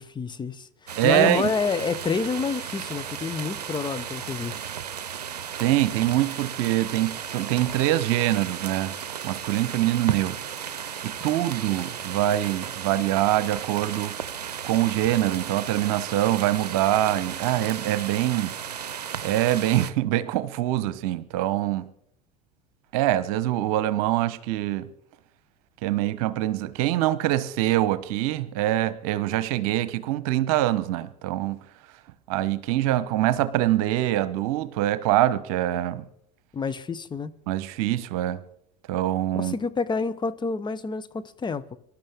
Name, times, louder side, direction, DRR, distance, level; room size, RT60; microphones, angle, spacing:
voice 1, 0.0-4.5 11.2-11.6 36.5-37.3 39.3-41.8, left 4 dB, 20° left, 1.0 m, -28 dB
sound 1, 0.9-19.9, right 8 dB, 85° right, 0.6 m, -35 dB
voice 2, 1.0-1.5 5.6-8.9 9.2-10.4 11.0-14.2 14.6-18.5 19.2-21.9 22.9-24.9 25.8-31.6 32.3-36.0 37.5-38.4 38.9-39.6, right 14 dB, 65° right, 1.0 m, -24 dB
25.0 x 12.0 x 3.6 m
hypercardioid pair, 75°, 20 cm